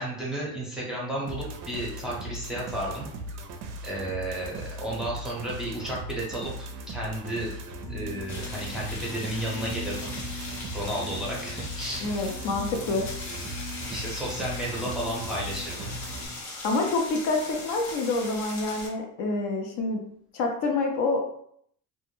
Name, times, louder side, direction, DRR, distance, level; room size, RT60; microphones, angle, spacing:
voice 1, 0.0-3.1 3.8-7.5 7.9-10.1 10.7-12.1 13.9-15.9, right 1 dB, ahead, -5 dB, 0.6 m, -33 dB
sound 1, 1.3-16.3, right 1 dB, 45° right, 0.4 m, -39 dB
sound 2, 7.8-16.4, left 2 dB, 25° left, 0.8 m, -42 dB
sound 3, 8.3-18.9, left 2 dB, 80° left, 0.9 m, -40 dB
voice 2, 12.0-13.0 16.6-20.0 20.3-21.2, left 3 dB, 55° left, 2 dB, 0.5 m, -27 dB
2.2 x 2.0 x 2.9 m, 0.67 s
cardioid pair, 125°, 38 cm